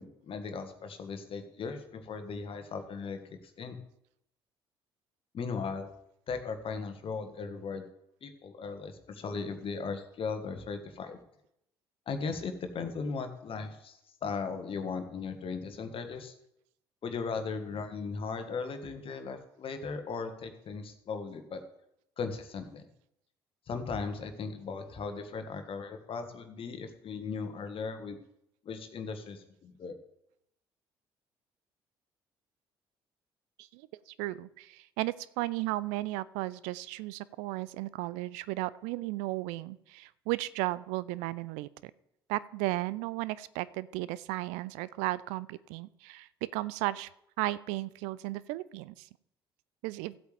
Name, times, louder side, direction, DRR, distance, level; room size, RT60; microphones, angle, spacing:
voice 1, 0.0-3.8 5.3-5.9 6.3-7.8 8.2-11.2 12.1-16.3 17.0-21.6 22.2-22.9 23.7-28.2 28.6-30.0, left 5 dB, 45° left, 7 dB, 1.5 m, -37 dB
voice 2, 33.6-41.9 42.3-47.1 47.4-49.1 49.8-50.2, right 18 dB, 65° right, 21 dB, 0.4 m, -35 dB
15.0 x 8.2 x 3.4 m, 0.77 s
figure-of-eight pair, 50°, 13 cm